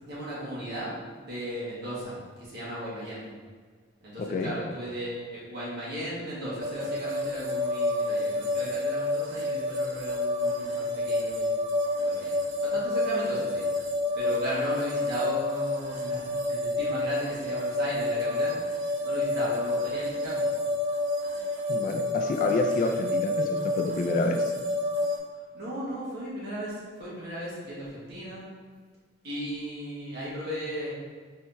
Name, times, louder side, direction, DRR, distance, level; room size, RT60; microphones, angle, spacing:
voice 1, 0.1-0.9 1.2-3.2 4.0-11.6 12.0-13.6 14.1-18.6 19.0-20.4 25.5-28.5 29.2-30.9, right 1 dB, 55° right, -8 dB, 1.5 m, -36 dB
voice 2, 4.2-4.5 21.7-24.5, left 2 dB, 40° left, 3 dB, 0.3 m, -29 dB
sound 1, 6.6-25.2, left 2 dB, 75° right, 0.6 m, -29 dB
4.3 x 3.6 x 2.6 m, 1.5 s
head